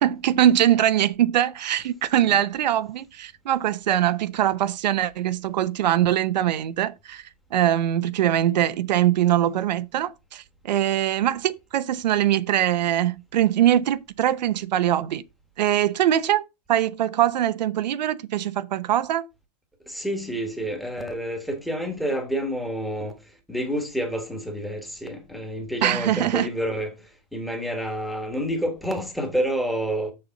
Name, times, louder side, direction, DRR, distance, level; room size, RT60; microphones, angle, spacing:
voice 1, 0.0-7.2 7.5-15.2 15.6-16.4 16.7-19.3 25.8-26.5, right 11 dB, 85° right, 0.8 m, -22 dB
voice 2, 19.9-30.1, equal, ahead, 1.2 m, -29 dB
6.8 x 6.8 x 4.0 m
supercardioid pair, 175°, 21 cm